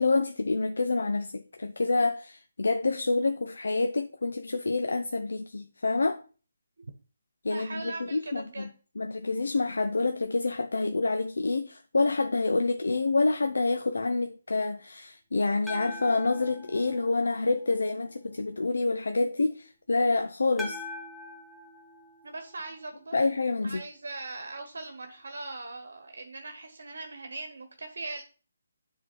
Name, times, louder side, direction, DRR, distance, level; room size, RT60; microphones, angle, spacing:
voice 1, 0.0-6.2 7.4-8.7 9.0-20.8 23.1-23.8, left 3 dB, 75° left, 0.6 m, -27 dB
voice 2, 7.5-8.7 22.2-23.1 23.6-28.2, right 3 dB, 70° right, 1.2 m, -40 dB
sound 1, 15.7-17.9 20.6-23.0, left 2 dB, ahead, 1.0 m, -43 dB
9.3 x 3.8 x 4.5 m
figure-of-eight pair, 155°, 0 cm